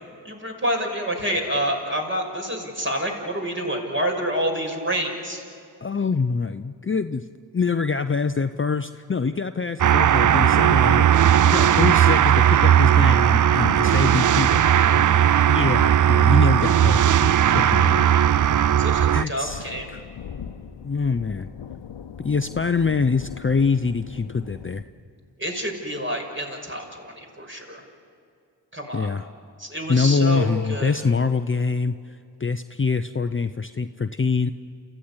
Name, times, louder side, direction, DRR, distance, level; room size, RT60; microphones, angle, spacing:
voice 1, 0.2-5.4 18.8-19.9 25.4-27.8 28.7-29.1 29.6-31.0, equal, 25° right, 1 dB, 6.0 m, -28 dB
voice 2, 5.8-7.3 7.5-14.6 14.9-15.0 15.5-18.0 19.1-20.0 20.8-21.5 22.2-24.8 28.9-29.3 29.9-34.5, left 4 dB, 30° left, 10 dB, 0.7 m, -25 dB
sound 1, 9.8-19.2, right 10 dB, 45° right, 0.5 m, -17 dB
sound 2, 16.3-24.8, left 8 dB, 80° left, 1.1 m, -40 dB
28.5 x 15.0 x 9.8 m, 2.5 s
cardioid pair, 40°, 44 cm